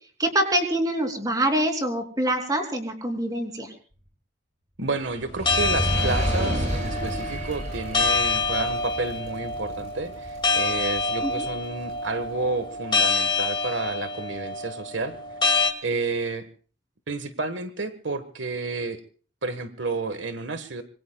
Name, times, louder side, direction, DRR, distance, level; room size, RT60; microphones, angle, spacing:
voice 1, 0.2-3.7 11.2-11.3, right 1 dB, 20° right, 5 dB, 3.0 m, -25 dB
voice 2, 4.8-15.1 15.8-16.5 17.1-19.0 19.4-20.8, right 3 dB, 75° right, 10 dB, 1.5 m, -30 dB
Fire, 5.2-11.7 12.3-12.4, equal, 40° right, 7.8 m, -30 dB
sound 1, 5.5-15.7, left 3 dB, 25° left, 2.0 m, -27 dB
26.0 x 22.5 x 2.3 m, 0.40 s
head